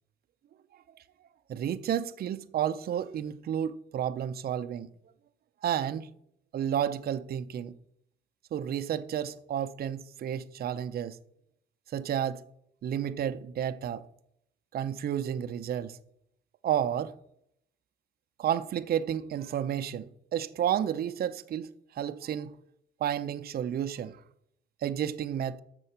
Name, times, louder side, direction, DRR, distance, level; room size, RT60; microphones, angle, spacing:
voice 1, 1.5-4.9 5.6-6.1 6.5-7.7 8.5-11.2 11.9-12.4 12.8-14.0 14.7-16.0 16.6-17.1 18.4-21.7 22.0-22.5 23.0-24.2 24.8-25.6, right 9 dB, 50° right, 0.5 m, -31 dB
6.9 x 6.6 x 5.6 m
cardioid pair, 90°, 20 cm